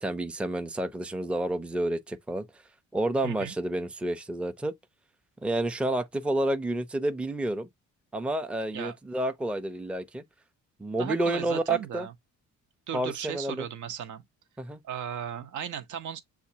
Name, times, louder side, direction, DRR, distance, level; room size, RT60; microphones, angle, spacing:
voice 1, 0.0-2.5 2.9-4.7 5.4-7.7 8.1-10.2 10.8-12.1 12.9-13.7 14.6-14.8, right 1 dB, 5° right, 0.5 m, -29 dB
voice 2, 11.0-12.1 12.9-14.2 14.8-16.2, right 9 dB, 75° right, 0.9 m, -36 dB
7.0 x 2.4 x 2.7 m
cardioid pair, 90°, 30 cm